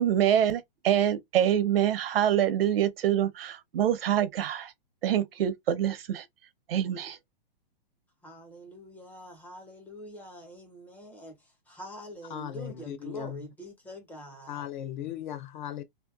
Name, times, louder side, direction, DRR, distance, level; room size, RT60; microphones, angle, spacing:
voice 1, 0.0-4.7 5.0-6.2 6.7-7.2, right 10 dB, 75° right, 0.7 m, -25 dB
voice 2, 8.2-11.4 11.7-14.7, right 1 dB, 5° left, 0.5 m, -45 dB
voice 3, 12.3-13.5 14.5-15.8, left 11 dB, 55° left, 0.6 m, -37 dB
2.8 x 2.2 x 2.2 m
hypercardioid pair, 150°, 29 cm